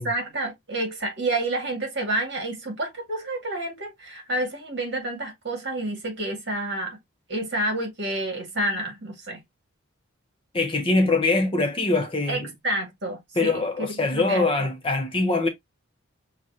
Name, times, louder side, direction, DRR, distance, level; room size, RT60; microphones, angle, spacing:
voice 1, 0.1-7.0 7.3-9.4 12.3-14.7, right 1 dB, 55° right, 1.9 m, -29 dB
voice 2, 10.5-12.5 13.4-15.5, left 2 dB, 25° left, 0.8 m, -23 dB
6.3 x 2.4 x 2.7 m
head